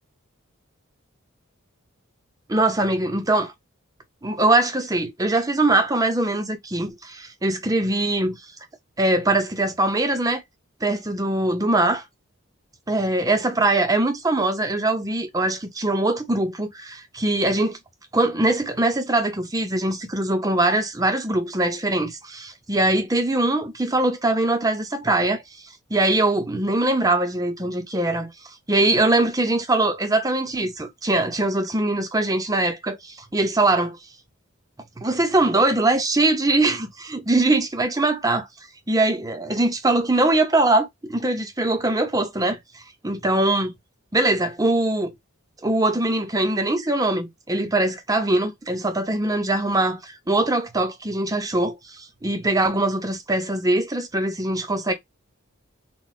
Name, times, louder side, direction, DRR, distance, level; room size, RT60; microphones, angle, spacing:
voice 1, 2.5-3.5 4.2-8.4 9.0-10.4 10.8-12.0 12.9-17.8 18.1-25.4 25.9-28.3 28.7-34.0 35.0-38.5 38.9-42.6 43.0-43.7 44.1-45.1 45.6-54.9, right 2 dB, 15° right, 0.6 m, -22 dB
3.9 x 2.3 x 2.4 m
head